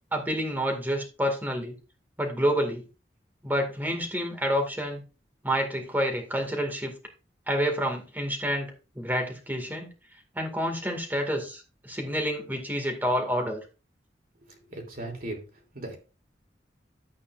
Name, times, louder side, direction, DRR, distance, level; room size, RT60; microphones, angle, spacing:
voice 1, 0.1-1.7 2.2-2.8 3.4-5.0 5.4-6.9 7.5-9.9 10.4-13.6, equal, 10° right, 3 dB, 2.0 m, -28 dB
voice 2, 14.8-15.4 15.7-15.9, right 1 dB, 55° right, 2 dB, 3.0 m, -36 dB
11.5 x 8.5 x 2.5 m, 0.32 s
head